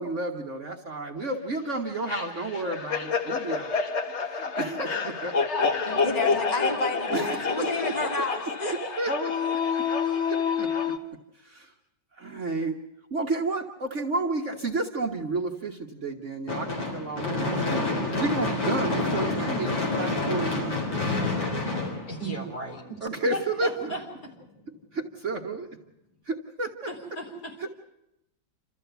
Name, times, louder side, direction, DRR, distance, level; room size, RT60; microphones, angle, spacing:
voice 1, 0.0-3.9 4.2-5.3 5.7-5.9 7.1-8.5 9.0-9.9 10.3-10.9 11.3-11.7 12.2-12.8 13.1-20.8 21.3-21.7 23.0-23.9 24.9-25.7 26.3-26.9 27.6-27.7, right 2 dB, 45° right, 1 dB, 1.4 m, -32 dB
sound 1, 2.1-11.0, left 5 dB, 40° left, 1.3 m, -28 dB
voice 2, 5.9-8.7 10.0-10.2, left 2 dB, 20° left, 2 dB, 2.5 m, -31 dB
Gunshot gunfire / Fireworks, 16.5-22.7, left 2 dB, 85° left, 4.5 m, -28 dB
voice 3, 22.1-23.0 23.3-24.0 26.9-27.5, right 1 dB, 55° left, 0 dB, 4.8 m, -35 dB
28.0 x 14.0 x 8.0 m, 0.86 s
omnidirectional pair, 2.0 m